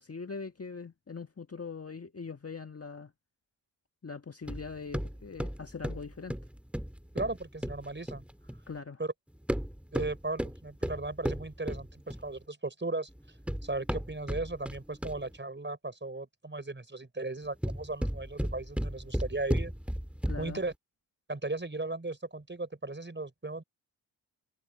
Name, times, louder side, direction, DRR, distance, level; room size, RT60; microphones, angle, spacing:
voice 1, 0.0-3.1 4.0-6.3 8.7-9.0 20.3-20.6, left 5 dB, 30° left, 1.7 m, -42 dB
sound 1, 4.5-8.7 9.4-12.4 13.2-15.4 17.4-20.7, equal, ahead, 4.0 m, -35 dB
voice 2, 7.1-8.2 9.0-9.1 9.9-13.1 13.6-19.7 20.4-20.7 21.3-23.6, right 2 dB, 25° right, 5.6 m, -36 dB
supercardioid pair, 40°, 48 cm